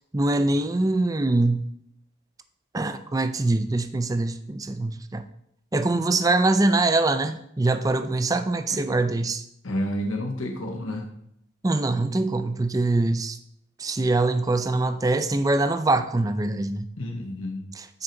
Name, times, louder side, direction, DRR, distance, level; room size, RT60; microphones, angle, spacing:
voice 1, 0.1-1.7 2.7-5.2 5.7-9.4 11.6-13.4 13.8-16.9 17.8-18.0, right 2 dB, 15° right, 10 dB, 0.4 m, -23 dB
voice 2, 9.6-11.1 17.0-17.6, left 1 dB, 85° left, 2 dB, 1.2 m, -30 dB
9.8 x 4.5 x 3.9 m, 0.75 s
head